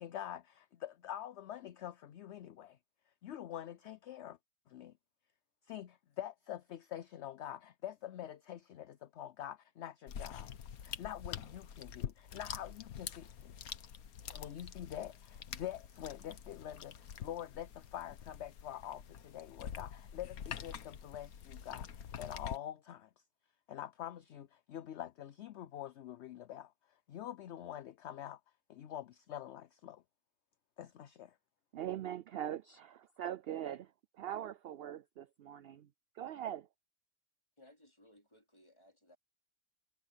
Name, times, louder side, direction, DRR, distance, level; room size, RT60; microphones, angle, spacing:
voice 1, 0.0-2.8 3.2-4.4 4.7-4.9 5.7-10.5 10.8-13.6 14.3-21.9 22.2-23.1 23.7-26.7 27.1-28.4 28.7-30.0 30.8-31.4, left 11 dB, 60° left, 0.8 m, -46 dB
sound 1, 10.1-22.6, left 8 dB, 85° left, 1.5 m, -46 dB
voice 2, 31.7-33.9 34.2-35.9 36.1-36.7, right 11 dB, 70° right, 0.6 m, -41 dB
voice 3, 37.6-39.2, left 1 dB, 20° left, 4.0 m, -63 dB
omnidirectional pair, 1.5 m